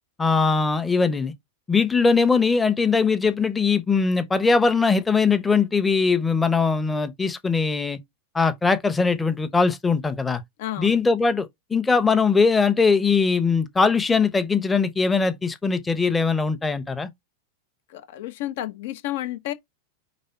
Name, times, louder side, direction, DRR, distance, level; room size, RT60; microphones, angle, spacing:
voice 1, 0.2-1.3 1.7-8.0 8.3-10.4 10.8-17.1, left 4 dB, 10° left, 0.9 m, -21 dB
voice 2, 10.6-11.0 17.9-19.5, left 14 dB, 50° left, 0.9 m, -31 dB
5.3 x 3.5 x 5.5 m
figure-of-eight pair, 90°, 0 cm